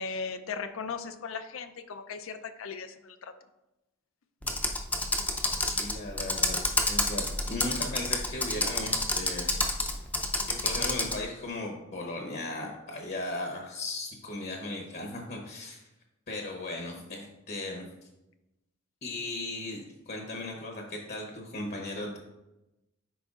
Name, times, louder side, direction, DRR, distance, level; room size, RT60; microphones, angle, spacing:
voice 1, 0.0-3.3, left 5 dB, 80° left, 10 dB, 0.5 m, -37 dB
Computer keyboard, 4.4-11.2, left 2 dB, 5° left, 0.5 m, -29 dB
voice 2, 5.6-9.6 10.5-15.8 16.3-17.9 19.0-22.2, left 2 dB, 50° left, 1 dB, 0.9 m, -37 dB
10.0 x 4.5 x 2.4 m, 0.97 s
head